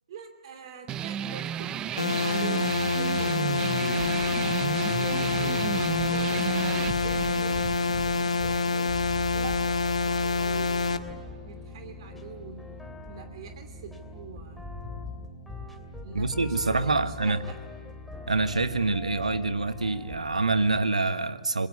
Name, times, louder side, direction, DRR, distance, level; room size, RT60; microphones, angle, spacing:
voice 1, 0.1-2.7 3.0-4.7 5.1-8.9 9.3-11.1 11.4-14.7 16.0-17.6, right 5 dB, 55° right, 7 dB, 2.7 m, -44 dB
sound 1, 0.9-9.9, right 10 dB, 20° right, 0.7 m, -34 dB
sound 2, 2.0-11.0, left 4 dB, 80° left, 1.6 m, -27 dB
sound 3, 4.0-20.9, left 2 dB, 5° left, 2.7 m, -42 dB
voice 2, 16.1-17.4 18.3-21.7, right 3 dB, 85° right, 12 dB, 1.4 m, -26 dB
26.5 x 21.5 x 8.3 m, 1.4 s
figure-of-eight pair, 125°, 4 cm